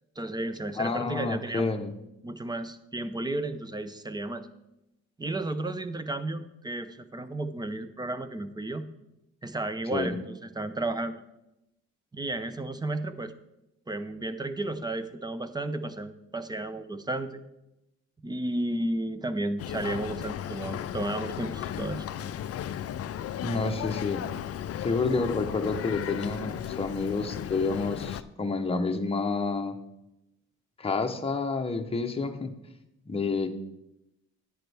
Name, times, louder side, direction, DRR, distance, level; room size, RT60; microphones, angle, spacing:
voice 1, 0.2-1.7 2.2-4.5 5.2-8.8 9.4-11.2 12.1-13.3 13.9-17.4 18.2-22.1, right 2 dB, 15° right, 11 dB, 0.6 m, -33 dB
voice 2, 0.7-2.0 9.9-10.2 23.4-24.2 24.8-29.8 30.8-32.5 33.1-33.5, left 3 dB, 20° left, 4 dB, 0.8 m, -29 dB
Boat Water vehicle, 19.6-28.2, left 10 dB, 50° left, 0.4 m, -35 dB
10.5 x 9.4 x 3.4 m, 0.89 s
cardioid pair, 115°, 30 cm